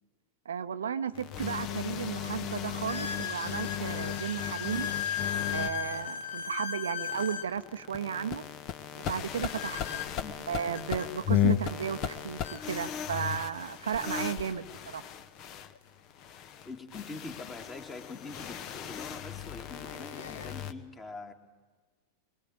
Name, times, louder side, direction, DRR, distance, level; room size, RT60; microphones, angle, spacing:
voice 1, 0.4-4.9 5.5-8.5 9.0-10.0 10.5-15.1, right 7 dB, 65° right, 10 dB, 0.8 m, -34 dB
sound 1, 1.1-1.2 1.9-2.0 2.9-7.5 9.4-11.1 12.1-12.2 12.4-12.6 13.4-13.5 15.7-15.8 17.9-18.0 18.7-19.0 19.6-20.5, left 9 dB, 60° left, 1.5 m, -37 dB
sound 2, 1.1-6.5 7.0-20.7, left 9 dB, 40° left, 1.2 m, -36 dB
voice 2, 16.6-21.3, left 3 dB, 20° left, 5 dB, 2.5 m, -44 dB
23.0 x 22.5 x 9.2 m, 1.3 s
figure-of-eight pair, 90°, 0 cm